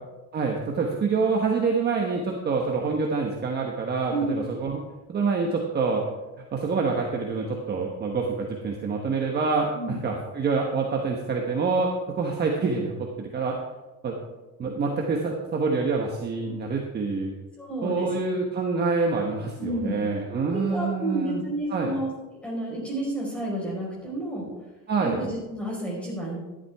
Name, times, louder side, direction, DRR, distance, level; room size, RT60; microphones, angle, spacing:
voice 1, 0.3-4.8 5.1-6.0 6.5-12.9 13.2-13.5 14.0-14.2 14.6-17.3 17.8-21.4 21.7-21.9 24.9-25.2, right 4 dB, 30° right, 0 dB, 1.2 m, -26 dB
voice 2, 17.6-18.1 19.6-20.0 20.5-22.1 22.4-24.5 25.0-26.4, right 1 dB, 5° left, -4 dB, 4.9 m, -30 dB
13.0 x 11.5 x 3.6 m, 1.1 s
cardioid pair, 155°, 36 cm